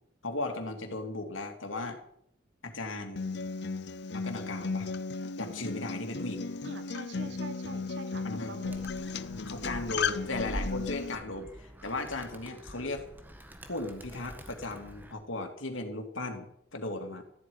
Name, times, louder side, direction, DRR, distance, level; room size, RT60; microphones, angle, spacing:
voice 1, 0.2-2.0 2.6-3.4 4.1-4.9 5.4-6.5 8.2-8.5 9.4-13.1 13.7-17.2, left 2 dB, 85° left, 4 dB, 2.7 m, -36 dB
Acoustic guitar, 3.2-11.1, left 4 dB, 60° left, 0.7 m, -35 dB
voice 2, 6.6-8.8, right 3 dB, 65° right, 11 dB, 1.2 m, -45 dB
Animal, 8.7-15.1, equal, 10° right, 1.5 m, -44 dB
14.0 x 8.4 x 9.7 m, 0.72 s
head